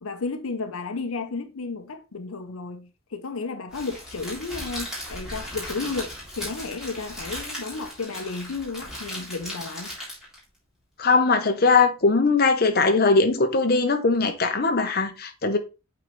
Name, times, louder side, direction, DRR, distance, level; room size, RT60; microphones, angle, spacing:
voice 1, 0.0-9.9, left 4 dB, 80° left, 0.7 m, -33 dB
Crackle, 3.7-10.4, equal, 5° right, 3.2 m, -37 dB
voice 2, 11.0-15.6, left 4 dB, 45° left, 0.9 m, -20 dB
8.3 x 4.0 x 3.1 m
head